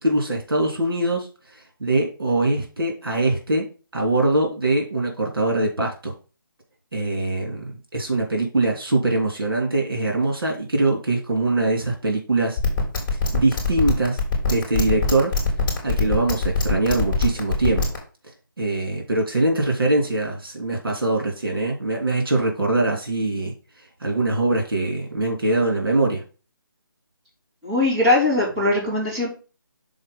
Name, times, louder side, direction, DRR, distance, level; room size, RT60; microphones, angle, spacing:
voice 1, 0.0-1.3 1.5-3.7 3.9-6.1 6.9-12.6 13.3-14.2 14.5-15.3 15.8-18.0 18.6-23.5 24.0-26.2, right 2 dB, 80° right, 1 dB, 3.2 m, -22 dB
sound 1, 12.6-18.0, left 5 dB, 10° left, 2.9 m, -22 dB
voice 2, 27.6-29.3, left 2 dB, 15° right, -8 dB, 3.1 m, -20 dB
6.4 x 4.2 x 5.5 m, 0.35 s
hypercardioid pair, 165°, 12 cm